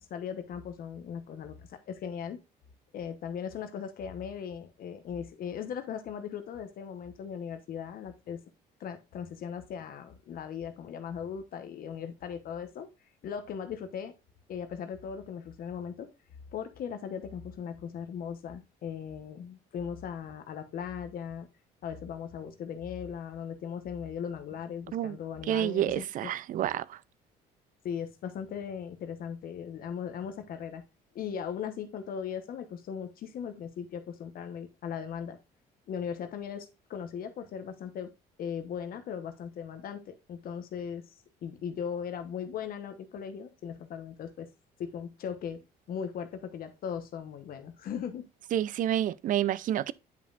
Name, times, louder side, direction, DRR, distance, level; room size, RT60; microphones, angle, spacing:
voice 1, 0.0-2.4 2.9-8.4 8.8-12.9 13.2-14.1 14.5-16.1 16.5-21.5 21.8-26.3 27.8-30.8 31.1-35.4 35.9-38.1 38.4-41.1 41.4-44.5 44.8-48.3, left 7 dB, 60° left, 1.0 m, -38 dB
voice 2, 25.5-27.0 48.5-49.9, right 11 dB, 50° right, 0.4 m, -29 dB
9.5 x 5.3 x 2.4 m
cardioid pair, 110°, 17 cm